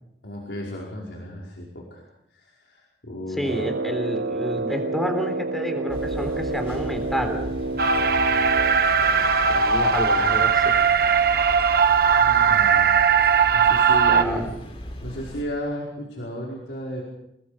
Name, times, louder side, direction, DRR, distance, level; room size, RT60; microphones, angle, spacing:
voice 1, 0.2-2.0 2.3-3.5 8.7-9.3 12.2-13.0 13.5-14.4 15.0-17.0, equal, 90° left, -3 dB, 5.1 m, -34 dB
voice 2, 3.3-7.5 9.5-10.8 14.1-14.5, equal, ahead, 5 dB, 3.7 m, -29 dB
Brass instrument, 3.4-9.0, right 2 dB, 80° right, 0.8 m, -29 dB
sound 1, 5.9-15.4, equal, 35° left, 4.2 m, -37 dB
sound 2, 7.8-14.2, right 6 dB, 60° right, 1.2 m, -19 dB
28.5 x 20.5 x 5.1 m, 0.81 s
head